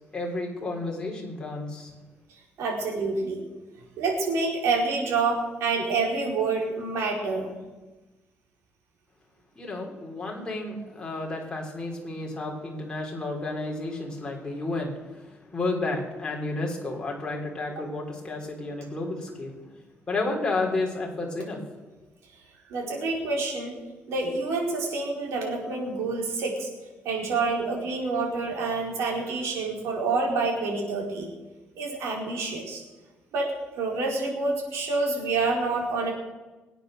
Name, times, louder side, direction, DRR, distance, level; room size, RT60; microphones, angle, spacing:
voice 1, 0.1-1.9 9.6-15.2 15.5-19.5 20.1-21.6, left 2 dB, 20° left, -1 dB, 3.8 m, -31 dB
voice 2, 2.6-3.4 4.0-7.6 22.7-23.7 24.1-26.7 27.0-31.3 31.8-32.8 33.3-36.1, right 3 dB, 90° right, -1 dB, 4.7 m, -27 dB
22.0 x 9.1 x 6.6 m, 1.2 s
cardioid pair, 130°, 4 cm